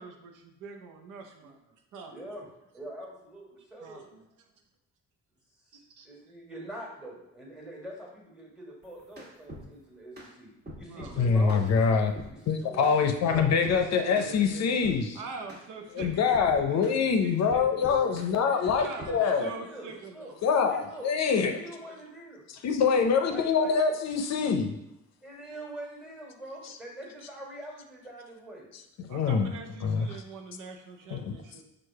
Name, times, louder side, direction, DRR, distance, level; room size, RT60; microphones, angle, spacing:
voice 1, 0.0-1.6 1.9-2.3 3.8-4.2 5.7-6.1 10.9-12.0 13.2-14.7 15.1-18.2 18.5-20.8 21.8-22.0 26.6-26.7 29.1-31.6, right 4 dB, 85° right, 4 dB, 0.7 m, -44 dB
voice 2, 2.1-2.5 2.7-4.0 6.0-10.5 10.8-11.8 12.3-14.0 18.3-20.3 20.7-21.1 21.4-22.4 23.3-23.8 25.2-28.7, right 1 dB, 5° right, -3 dB, 1.5 m, -44 dB
sound 1, 8.8-9.7 10.2-10.3 10.7-11.7 12.2-12.3 12.8-13.0 13.3-13.8 14.2-14.3 14.8-15.0 15.5-15.6 16.0-17.0 17.5-18.3 18.7-19.2, equal, 30° right, 1.5 m, -43 dB
voice 3, 11.2-12.1 12.5-15.2 15.9-19.5 20.4-21.6 22.6-24.7 29.1-29.5 29.8-30.1 31.1-31.3, left 6 dB, 60° left, 6 dB, 0.6 m, -25 dB
4.6 x 2.5 x 4.6 m, 0.85 s
cardioid pair, 90°, 30 cm